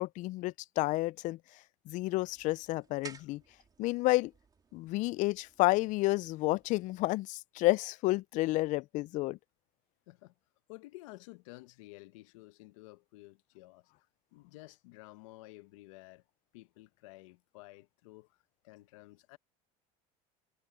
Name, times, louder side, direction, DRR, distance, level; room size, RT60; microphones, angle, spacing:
voice 1, 0.0-1.4 1.9-3.4 3.8-4.3 4.7-9.4, left 20 dB, 50° left, 0.4 m, -30 dB
sound 1, 2.1-7.1, right 5 dB, 25° right, 3.4 m, -56 dB
voice 2, 10.7-13.9 14.3-16.2 16.5-18.4 18.6-19.4, left 20 dB, 90° left, 1.0 m, -52 dB
supercardioid pair, 120°, 16 cm